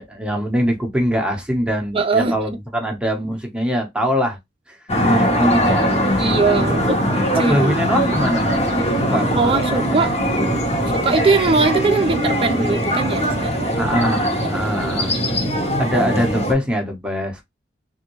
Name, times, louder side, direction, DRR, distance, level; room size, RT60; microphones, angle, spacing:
voice 1, 0.0-4.4 4.7-4.8 5.0-6.0 6.6-8.5 9.0-10.0 13.8-15.2 15.8-17.4, equal, 5° right, 0.9 m, -23 dB
voice 2, 1.9-2.4 6.2-7.0 7.3-7.7 9.3-10.1 10.9-14.0 14.4-14.9, right 4 dB, 30° right, 0.5 m, -20 dB
sound 1, 4.9-16.5, equal, 35° left, 1.3 m, -20 dB
3.5 x 2.6 x 3.0 m
head